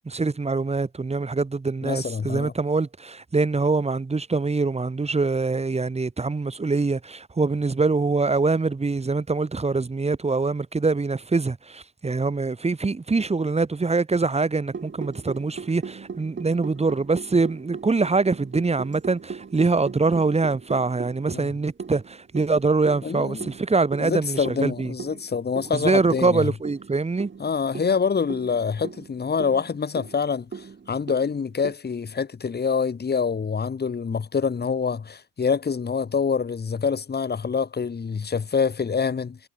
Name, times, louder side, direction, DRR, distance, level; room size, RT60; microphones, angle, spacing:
voice 1, 0.0-24.9 25.7-27.3, right 3 dB, 20° right, 1.6 m, -24 dB
voice 2, 1.8-2.5 21.3-21.5 23.0-23.5 24.0-26.5 27.4-39.4, left 6 dB, 35° left, 2.2 m, -26 dB
sound 1, 14.7-31.7, right 5 dB, 40° right, 7.1 m, -39 dB
cardioid pair, 90°, 30 cm